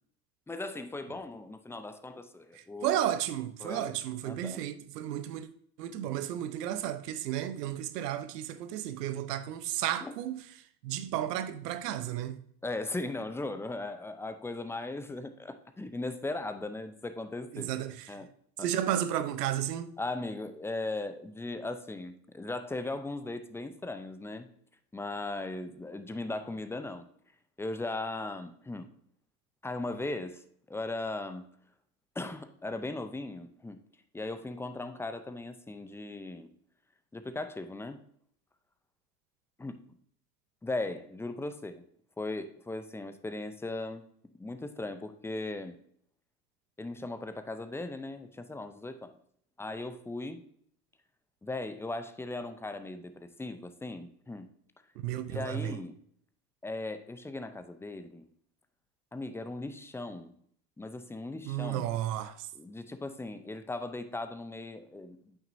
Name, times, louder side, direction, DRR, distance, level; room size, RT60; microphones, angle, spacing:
voice 1, 0.5-3.0 3.6-4.0 4.2-4.6 10.0-10.1 12.6-17.7 18.1-18.3 18.6-18.7 20.0-24.5 24.9-27.1 27.6-28.9 29.6-31.5 32.2-33.8 34.1-36.5 37.1-38.0 39.6-39.8 40.6-41.8 42.2-44.0 44.4-45.8 46.8-49.2 49.6-50.4 51.4-54.5 55.3-56.0 56.6-58.3 59.1-60.3 60.8-61.9 62.5-65.4, left 2 dB, 5° left, 0.5 m, -38 dB
voice 2, 2.8-5.5 5.8-10.4 10.8-12.4 17.5-18.1 18.6-19.9 55.0-55.8 61.4-62.5, right 11 dB, 75° right, 0.9 m, -33 dB
8.8 x 6.1 x 2.7 m
hypercardioid pair, 90°, 48 cm